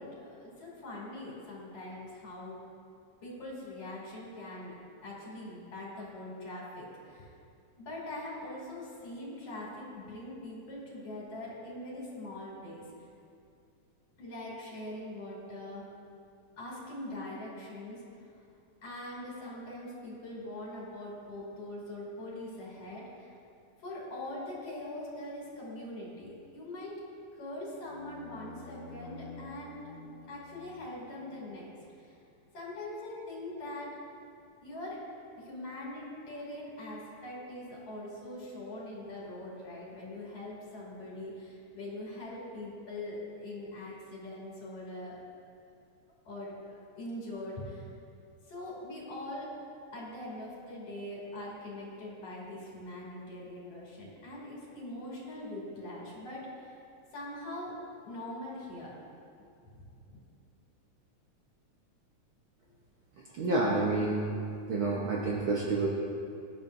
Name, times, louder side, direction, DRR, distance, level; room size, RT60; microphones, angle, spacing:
voice 1, 0.0-2.6 3.2-4.7 5.0-7.3 7.8-12.8 14.2-15.9 16.6-18.0 18.8-23.3 23.8-27.0 27.4-29.8 30.3-31.7 32.0-32.1 32.5-34.0 34.6-35.0 35.4-45.2 46.3-47.9 48.5-49.5 49.9-56.7 57.1-57.7 58.0-58.9 59.7-60.2, left 1 dB, 55° left, -5 dB, 3.7 m, -42 dB
sound 1, 27.7-32.0, left 2 dB, 75° left, 2.7 m, -50 dB
voice 2, 63.3-64.2 64.7-65.9, right 3 dB, 60° right, -4 dB, 1.4 m, -28 dB
19.0 x 10.5 x 2.6 m, 2.5 s
omnidirectional pair, 3.3 m